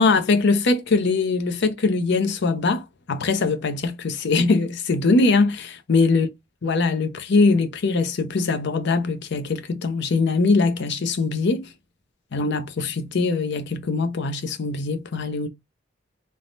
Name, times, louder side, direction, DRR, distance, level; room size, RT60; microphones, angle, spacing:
voice 1, 0.0-6.3 6.6-11.7 12.3-15.5, left 3 dB, 65° left, 0.6 m, -22 dB
3.3 x 2.1 x 2.6 m
head